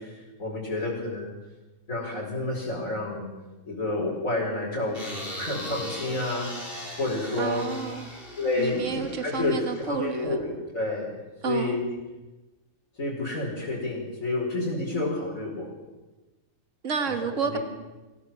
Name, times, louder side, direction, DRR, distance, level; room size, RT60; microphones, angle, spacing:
voice 1, 0.0-1.3 1.9-3.3 3.6-6.5 7.0-7.7 8.4-11.8 13.0-15.7 17.2-17.6, left 2 dB, 85° left, -5 dB, 5.1 m, -30 dB
sound 1, 4.9-10.3, left 1 dB, 40° left, 4.8 m, -39 dB
voice 2, 7.4-8.1 8.6-10.4 11.4-11.8 16.8-17.6, right 6 dB, 65° right, 6 dB, 1.9 m, -30 dB
25.5 x 16.0 x 7.2 m, 1.2 s
omnidirectional pair, 1.4 m